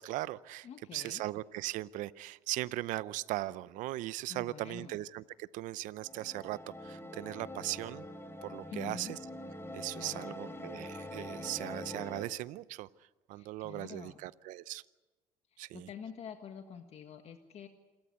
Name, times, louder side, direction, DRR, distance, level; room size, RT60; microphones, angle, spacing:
voice 1, 0.0-8.0 8.4-9.2 9.7-12.9 13.3-14.8 15.6-15.9, right 16 dB, 75° right, 18 dB, 0.6 m, -39 dB
voice 2, 0.6-1.2 4.3-4.9 8.7-9.2 9.9-10.4 13.3-14.2 15.5-17.7, left 7 dB, 55° left, 6 dB, 1.6 m, -47 dB
sound 1, 6.0-12.3, left 1 dB, 20° left, 3.4 m, -44 dB
27.5 x 13.0 x 9.5 m, 1.2 s
supercardioid pair, 80°, 13 cm